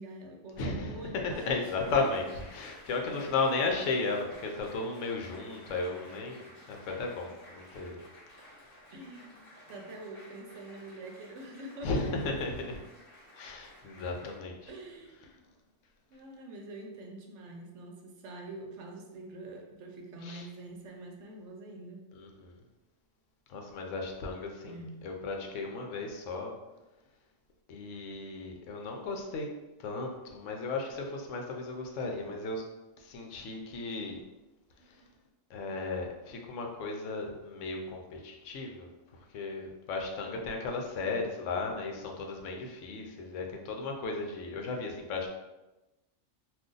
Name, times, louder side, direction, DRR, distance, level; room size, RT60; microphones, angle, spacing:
voice 1, 0.0-2.0 8.9-12.3 12.6-12.9 14.7-15.4 16.1-22.1 24.6-25.0, right 2 dB, 65° right, 1 dB, 0.9 m, -46 dB
voice 2, 0.6-1.0 1.2-8.0 11.8-12.8 13.4-14.6 20.2-20.4 22.1-22.6 23.5-24.8 25.0-26.5 27.7-29.5 29.8-32.6 33.0-34.2 35.5-38.9 39.3-45.3, left 3 dB, 75° left, 2 dB, 0.9 m, -35 dB
Applause, 1.5-14.4, left 1 dB, 35° left, 1.0 m, -54 dB
2.5 x 2.4 x 3.7 m, 1.0 s
omnidirectional pair, 1.3 m